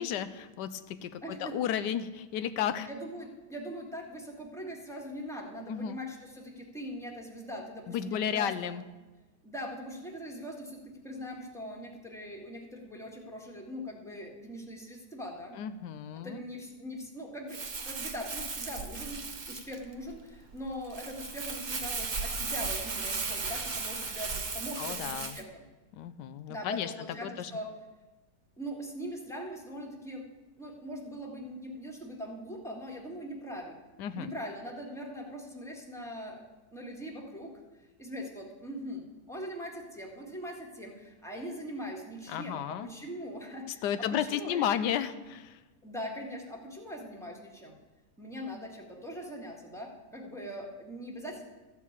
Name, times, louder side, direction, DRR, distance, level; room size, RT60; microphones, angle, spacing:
voice 1, 0.0-2.9 5.7-6.0 7.9-8.8 15.6-16.4 24.8-25.4 25.9-26.9 27.2-27.5 34.0-34.3 42.3-42.9 43.8-45.6, left 9 dB, 85° left, 13 dB, 1.2 m, -33 dB
voice 2, 1.2-1.5 2.9-8.7 9.4-15.6 16.1-25.6 26.5-27.7 28.6-30.3 30.6-33.8 34.1-36.4 36.7-37.5 38.0-43.8 44.1-44.8 45.8-47.8 48.2-51.4, equal, ahead, 0 dB, 1.4 m, -41 dB
Crumpling crinkling, 17.5-25.4, right 4 dB, 35° right, 0.8 m, -36 dB
13.5 x 4.6 x 8.5 m, 1.2 s
omnidirectional pair, 1.8 m